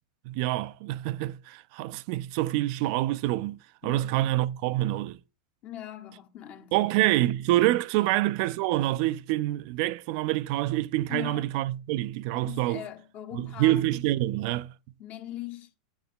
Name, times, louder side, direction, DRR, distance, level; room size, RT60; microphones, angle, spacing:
voice 1, 0.3-5.2 6.7-12.8 13.4-14.7, right 16 dB, 55° right, 0.3 m, -26 dB
voice 2, 3.8-4.3 5.6-6.9 8.0-8.2 11.1-11.6 12.3-13.9 15.0-15.7, left 13 dB, 40° left, 0.9 m, -41 dB
7.1 x 6.7 x 3.6 m
supercardioid pair, 130°, 4 cm